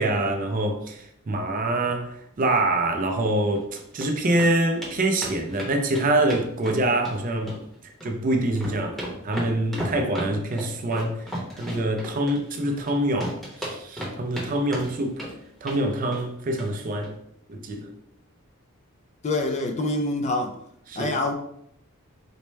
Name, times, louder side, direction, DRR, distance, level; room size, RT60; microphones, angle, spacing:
voice 1, 0.0-3.7 3.9-7.6 8.0-11.2 11.6-15.2 15.6-17.1 17.5-17.9 20.9-21.2, right 1 dB, 40° right, 0.4 m, -25 dB
sound 1, 3.5-4.1 4.4-4.5 4.8-4.9 5.2-7.2 7.5-8.1 8.4-12.9 13.2-14.5 14.7-15.3 15.6-15.8 16.1-16.3 16.6-16.7 17.0-17.1, equal, ahead, 0.8 m, -34 dB
voice 2, 19.2-20.5 20.9-21.3, left 2 dB, 30° left, 0.4 m, -25 dB
4.2 x 2.1 x 3.2 m
head